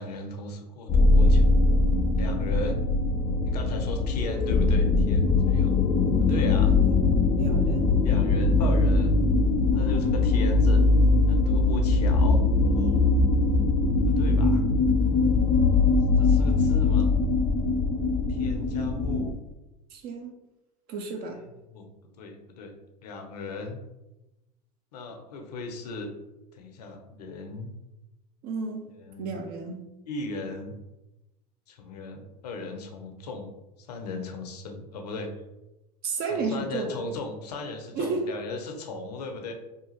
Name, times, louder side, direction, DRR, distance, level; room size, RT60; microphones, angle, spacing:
voice 1, 0.0-1.4 2.1-2.9 3.4-5.8 6.2-6.8 8.0-9.2 9.7-10.9 11.3-13.1 14.2-14.6 16.2-17.1 18.3-19.3 21.3-21.9 22.2-22.7 23.0-23.8 24.9-26.1 26.5-27.7 28.9-29.4 30.0-30.8 31.7-33.5 33.8-35.3 36.3-39.5, left 3 dB, 80° left, 4 dB, 0.6 m, -37 dB
sound 1, 0.9-19.3, left 3 dB, 30° left, 0.4 m, -21 dB
voice 2, 7.4-8.0 19.9-20.3 20.9-21.4 28.4-28.9 29.2-29.8 36.0-37.0 38.0-38.2, right 4 dB, 45° right, 4 dB, 0.5 m, -32 dB
2.8 x 2.3 x 2.9 m, 0.99 s
hypercardioid pair, 85°, 20 cm